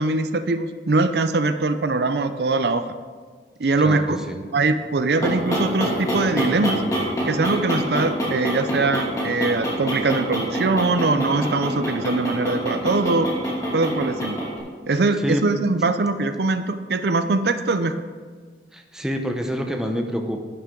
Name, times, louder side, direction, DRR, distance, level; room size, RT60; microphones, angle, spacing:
voice 1, 0.0-2.8 3.6-4.2 4.5-6.8 7.3-13.3 13.7-14.4 14.9-17.9, right 3 dB, 65° right, 10 dB, 0.5 m, -22 dB
voice 2, 3.8-4.4 15.2-15.4 18.7-20.4, equal, 5° right, 3 dB, 0.8 m, -27 dB
sound 1, 4.9-14.6, equal, 20° left, 2.5 m, -26 dB
11.0 x 10.0 x 3.8 m, 1.5 s
head